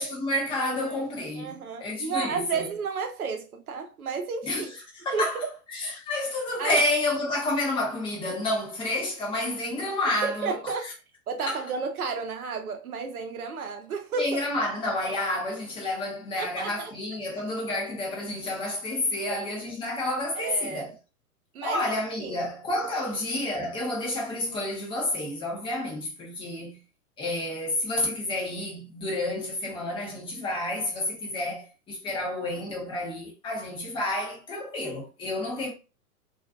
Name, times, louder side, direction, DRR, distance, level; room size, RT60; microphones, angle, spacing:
voice 1, 0.0-2.7 4.4-4.7 5.1-5.4 5.7-10.5 11.4-11.6 14.2-21.0 21.6-26.8 27.2-35.7, left 1 dB, 10° left, 0.5 m, -30 dB
voice 2, 0.6-1.0 1.4-4.7 5.1-5.5 6.6-6.8 10.2-10.9 11.3-14.4 16.4-16.9 19.2-19.4 20.4-20.9 21.5-21.9 22.2-22.4, right 5 dB, 75° right, 0.7 m, -32 dB
2.4 x 2.3 x 2.3 m
figure-of-eight pair, 105°, 44 cm